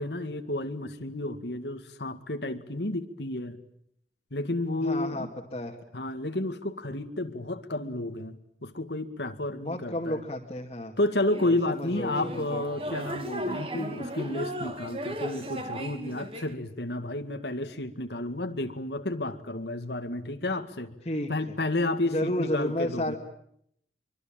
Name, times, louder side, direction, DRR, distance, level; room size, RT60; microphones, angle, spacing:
voice 1, 0.0-3.6 4.3-5.3 5.9-10.2 11.0-21.0 21.3-23.2, left 2 dB, 80° left, 7 dB, 2.1 m, -31 dB
voice 2, 4.8-5.7 9.6-10.9 11.5-12.6 21.0-21.3 22.0-23.2, left 1 dB, 35° left, -2 dB, 2.3 m, -32 dB
sound 1, 11.2-16.5, equal, 30° right, 2.4 m, -36 dB
24.5 x 24.0 x 9.0 m, 0.73 s
head